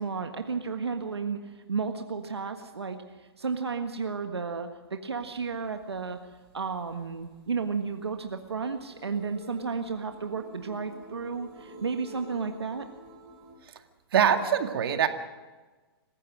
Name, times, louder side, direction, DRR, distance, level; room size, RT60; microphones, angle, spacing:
voice 1, 0.0-6.2 6.5-12.8, right 5 dB, 90° right, 5 dB, 1.6 m, -33 dB
sound 1, 5.2-13.5, equal, 40° right, 6.2 m, -49 dB
voice 2, 14.1-15.1, right 8 dB, 65° right, 6 dB, 2.1 m, -23 dB
27.0 x 15.5 x 6.4 m, 1.3 s
hypercardioid pair, 125°, 13 cm